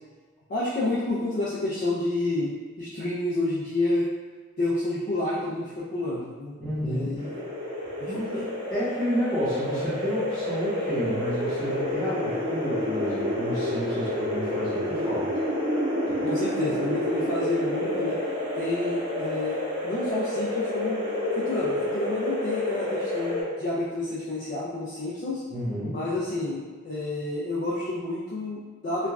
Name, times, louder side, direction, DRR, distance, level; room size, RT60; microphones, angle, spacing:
voice 1, 0.5-4.1 4.6-6.6 6.8-7.4 8.0-8.2 16.2-18.2 18.5-21.0 21.4-25.4 25.9-29.1, left 2 dB, 45° left, -8 dB, 0.4 m, -29 dB
voice 2, 6.6-7.2 8.1-15.4 25.5-26.0, equal, ahead, -15 dB, 0.9 m, -30 dB
sound 1, 7.2-23.4, left 1 dB, 50° right, 1.2 m, -29 dB
3.0 x 2.2 x 2.3 m, 1.3 s
head